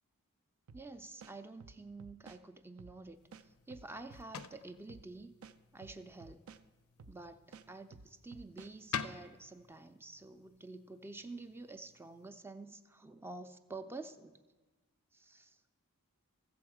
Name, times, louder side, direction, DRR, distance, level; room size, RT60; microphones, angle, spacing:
voice 1, 0.7-5.3 5.7-6.5 7.1-14.4 15.1-15.6, right 3 dB, 10° right, 9 dB, 0.4 m, -49 dB
sound 1, 0.7-0.9 1.2-2.4 2.8-3.0 3.3-4.5 4.9-5.1 5.4-6.6 7.0-7.2 7.5-8.7, right 5 dB, 70° right, 0.4 m, -54 dB
sound 2, 3.1-12.3, left 7 dB, 80° left, 0.4 m, -49 dB
14.5 x 7.0 x 4.8 m, 1.2 s
head